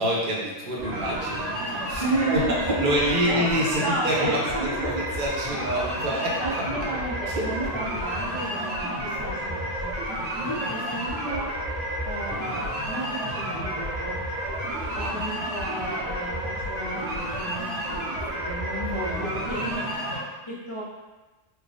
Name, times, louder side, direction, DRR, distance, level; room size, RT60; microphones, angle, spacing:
voice 1, 0.0-2.0 2.3-6.6 7.3-7.5 14.9-15.1 15.7-15.8, equal, 50° right, -4 dB, 0.9 m, -27 dB
sound 1, 0.8-20.2, equal, 85° right, 1.2 m, -31 dB
voice 2, 2.0-2.7 3.0-3.5 3.8-5.0 6.4-9.9 10.3-11.5 12.0-14.2 14.9-18.1 18.3-20.8, right 2 dB, 35° left, -9 dB, 0.5 m, -33 dB
3.3 x 2.0 x 3.8 m, 1.2 s
omnidirectional pair, 1.2 m